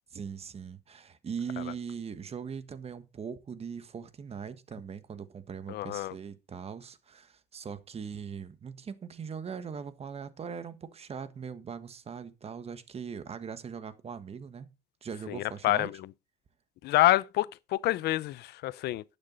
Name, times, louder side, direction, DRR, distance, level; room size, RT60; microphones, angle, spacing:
voice 1, 0.1-14.7 15.0-15.9, right 6 dB, 35° right, 1.4 m, -40 dB
voice 2, 5.7-6.1 15.3-16.0 16.8-19.0, left 16 dB, 75° left, 0.6 m, -27 dB
11.5 x 9.0 x 4.0 m
cardioid pair, 110°, 17 cm